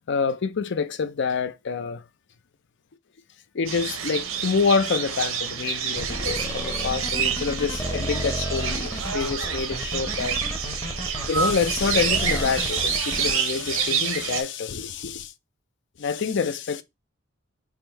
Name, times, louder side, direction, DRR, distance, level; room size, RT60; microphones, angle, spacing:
voice 1, 0.1-2.0 3.5-10.4 11.3-15.3 16.0-16.8, left 5 dB, 60° left, 0.5 m, -27 dB
sound 1, 3.6-14.4, right 7 dB, 85° right, 0.8 m, -28 dB
sound 2, 6.0-13.3, equal, 20° left, 0.8 m, -32 dB
3.6 x 2.6 x 4.4 m
head